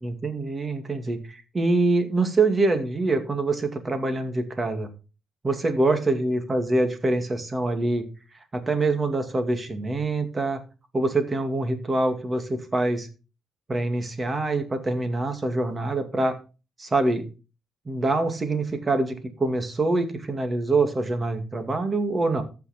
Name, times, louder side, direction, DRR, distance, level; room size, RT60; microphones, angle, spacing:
voice 1, 0.0-4.9 5.4-8.1 8.5-10.6 10.9-13.1 13.7-16.4 16.8-17.2 17.9-22.4, right 2 dB, 25° right, 8 dB, 2.3 m, -25 dB
14.0 x 5.8 x 4.4 m, 0.32 s
cardioid pair, 90°, 0 cm